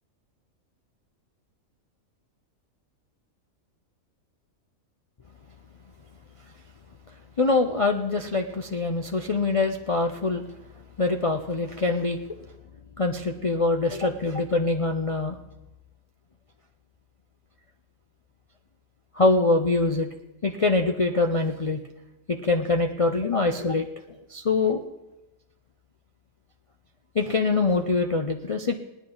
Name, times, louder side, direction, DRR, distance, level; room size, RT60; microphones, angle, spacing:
voice 1, 7.4-10.4 11.0-12.2 13.0-15.4 19.1-20.1 20.4-21.8 22.3-23.9 24.3-24.8 27.1-28.8, left 3 dB, 40° left, 3 dB, 0.4 m, -24 dB
19.0 x 10.0 x 3.9 m, 1.0 s
omnidirectional pair, 1.4 m